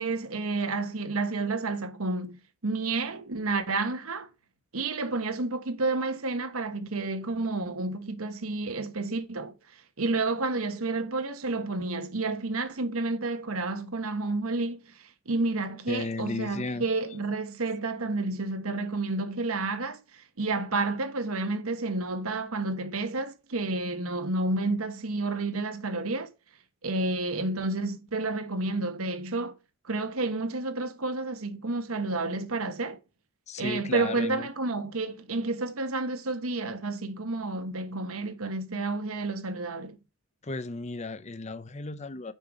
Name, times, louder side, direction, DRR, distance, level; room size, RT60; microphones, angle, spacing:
voice 1, 0.0-4.3 4.7-9.5 10.0-26.3 26.8-29.6 29.9-33.0 33.6-40.0, right 3 dB, 80° right, 1.2 m, -30 dB
voice 2, 15.9-16.8 33.5-34.5 40.4-42.3, left 3 dB, 30° left, 0.6 m, -34 dB
6.7 x 5.6 x 5.0 m
head